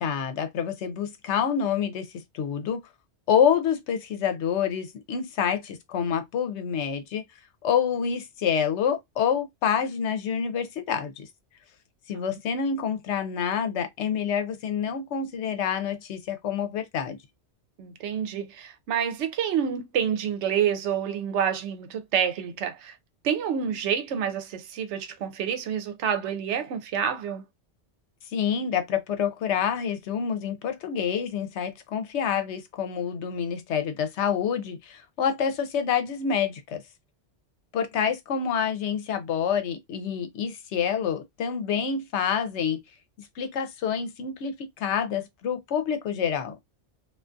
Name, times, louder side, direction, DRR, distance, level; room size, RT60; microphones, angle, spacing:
voice 1, 0.0-2.1 2.3-2.8 3.3-7.2 7.6-11.3 12.1-17.2 28.3-36.8 37.7-42.8 43.4-46.5, left 7 dB, 75° left, 0.9 m, -27 dB
voice 2, 17.8-23.0 23.2-27.4, right 8 dB, 80° right, 0.9 m, -28 dB
2.4 x 2.3 x 2.5 m
omnidirectional pair, 1.2 m